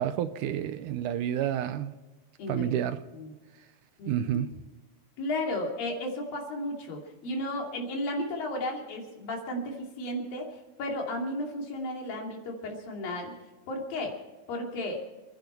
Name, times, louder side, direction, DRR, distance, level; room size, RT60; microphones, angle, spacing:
voice 1, 0.0-1.9 2.5-3.0 4.1-4.5, right 10 dB, 80° right, 12 dB, 2.0 m, -29 dB
voice 2, 2.4-2.8 3.1-3.3 4.0-4.4 5.2-10.5 10.8-13.3 13.7-14.1 14.5-15.0, left 1 dB, 85° left, 1 dB, 4.6 m, -34 dB
28.5 x 10.5 x 4.4 m, 1.2 s
omnidirectional pair, 4.0 m